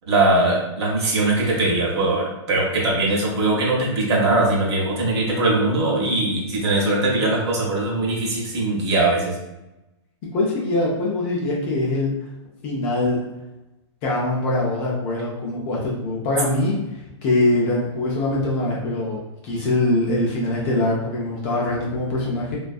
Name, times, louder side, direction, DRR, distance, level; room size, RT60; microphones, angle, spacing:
voice 1, 0.1-9.4, right 2 dB, 65° right, -3 dB, 0.7 m, -21 dB
voice 2, 10.3-12.1 12.6-13.2 14.0-16.8 17.2-19.2 19.4-22.6, left 2 dB, 25° left, -4 dB, 0.3 m, -23 dB
2.5 x 2.3 x 2.3 m, 0.98 s
hypercardioid pair, 160°, 15 cm